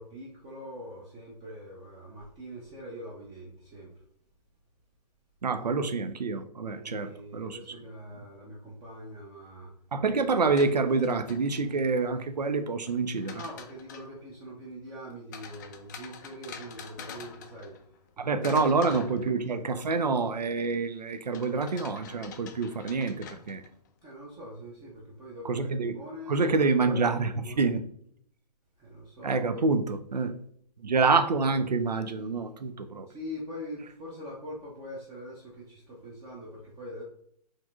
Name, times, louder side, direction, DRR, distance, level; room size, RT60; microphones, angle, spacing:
voice 1, 0.0-4.0 6.6-9.7 13.2-17.9 18.2-18.7 24.0-27.7 28.8-29.7 32.8-37.0, equal, 15° right, 0.6 m, -43 dB
voice 2, 5.4-7.6 9.9-13.4 18.2-23.6 25.4-25.9 26.3-27.8 29.2-30.3 30.8-33.1, right 4 dB, 80° right, 0.4 m, -27 dB
sound 1, 10.5-11.9 12.9-14.2 15.3-18.1 18.4-19.8 21.3-23.9, left 7 dB, 30° left, 0.4 m, -46 dB
4.2 x 3.1 x 2.5 m
figure-of-eight pair, 125°, 21 cm